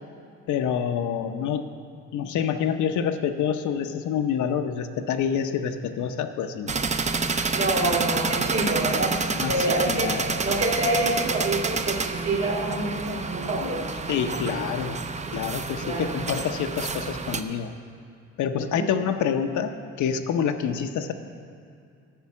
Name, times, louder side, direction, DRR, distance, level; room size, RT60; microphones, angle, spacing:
voice 1, 0.5-1.7 2.1-6.7 9.3-10.4 13.6-13.7 14.1-15.0 15.3-17.7 18.4-19.7 20.0-21.1, left 7 dB, 75° left, 7 dB, 0.7 m, -27 dB
sound 1, 6.7-17.4, right 4 dB, 25° right, 0.5 m, -29 dB
voice 2, 7.5-13.9 15.8-16.2 18.7-18.9, right 2 dB, 60° right, -3 dB, 2.8 m, -27 dB
10.0 x 5.8 x 8.4 m, 2.5 s
cardioid pair, 90°, 30 cm